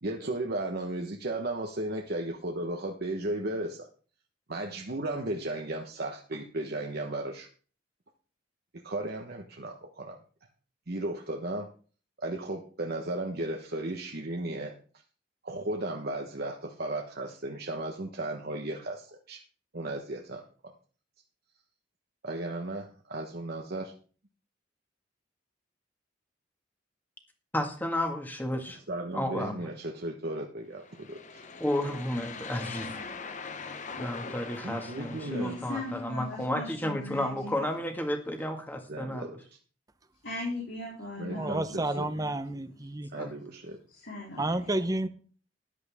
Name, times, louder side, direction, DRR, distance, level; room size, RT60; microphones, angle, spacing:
voice 1, 0.0-3.9 4.5-7.5 8.8-10.1 10.9-11.7 12.2-14.7 15.4-19.4 19.7-20.4 22.2-23.9 28.9-31.4 34.6-35.6 38.9-39.4 41.2-42.1 43.1-43.8, right 2 dB, 55° right, 1.2 m, -35 dB
voice 2, 27.5-28.8 29.1-29.7 31.6-33.0 34.0-39.3 41.3-41.4 43.2-43.3, left 1 dB, 10° left, 1.9 m, -32 dB
sound 1, 30.8-36.2, left 4 dB, 40° left, 0.9 m, -42 dB
voice 3, 35.2-37.6 40.2-42.6 43.9-44.6, left 2 dB, 80° left, 4.1 m, -39 dB
voice 4, 41.3-43.1 44.4-45.1, right 1 dB, 20° right, 0.8 m, -30 dB
13.5 x 11.0 x 3.6 m
head